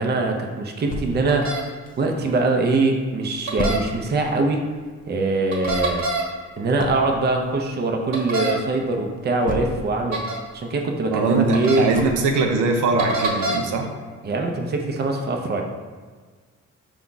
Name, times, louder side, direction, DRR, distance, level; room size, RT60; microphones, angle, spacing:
voice 1, 0.0-1.5 2.0-4.6 5.1-6.0 6.6-10.2 10.5-11.9 14.2-15.6, right 3 dB, 35° right, 2 dB, 0.6 m, -23 dB
sound 1, 0.9-2.4 2.8-2.9 3.1-10.1 10.5-12.7 13.1-13.2 13.6-13.7, left 2 dB, 30° left, 0.4 m, -33 dB
sound 2, 1.3-1.6 3.5-3.8 5.5-6.2 8.1-8.5 10.1-10.4 11.5-11.8 13.0-13.6, right 2 dB, 65° right, 1.2 m, -25 dB
voice 2, 11.1-13.9, right 3 dB, 80° right, 2 dB, 0.6 m, -21 dB
5.1 x 2.3 x 3.8 m, 1.5 s
cardioid pair, 90°, 30 cm